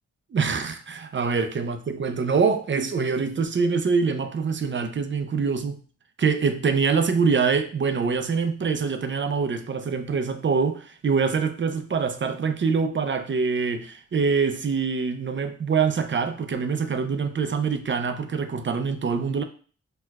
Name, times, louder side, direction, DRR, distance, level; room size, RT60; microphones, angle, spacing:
voice 1, 0.3-5.8 6.2-19.4, right 5 dB, 40° right, 0.5 m, -24 dB
4.4 x 2.2 x 2.3 m
cardioid pair, 50°, 29 cm